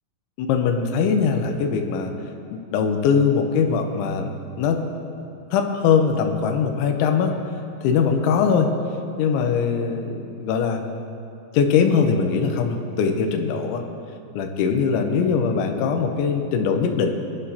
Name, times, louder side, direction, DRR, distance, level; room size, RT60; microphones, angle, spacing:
voice 1, 0.4-2.1 2.5-4.8 5.5-7.3 7.8-8.7 9.2-10.8 11.5-13.8 14.3-17.2, left 6 dB, 85° left, 4 dB, 3.2 m, -21 dB
23.0 x 11.0 x 2.9 m, 2.8 s
omnidirectional pair, 5.3 m